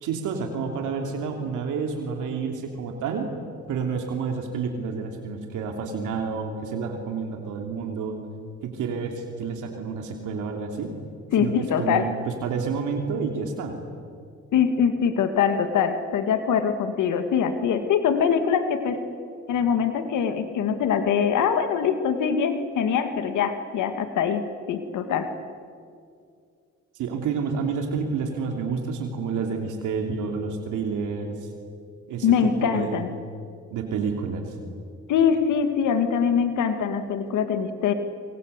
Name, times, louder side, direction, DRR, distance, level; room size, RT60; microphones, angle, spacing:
voice 1, 0.0-3.3 3.7-8.2 8.6-10.9 11.4-13.7 26.9-31.5 32.1-33.1 33.7-34.6, right 5 dB, 85° right, 3 dB, 3.0 m, -29 dB
voice 2, 11.3-12.1 14.5-19.0 19.5-24.4 24.7-25.3 32.2-33.1 35.1-37.9, left 7 dB, 80° left, 8 dB, 2.1 m, -23 dB
27.0 x 24.0 x 8.2 m, 2.2 s
cardioid pair, 90°, 30 cm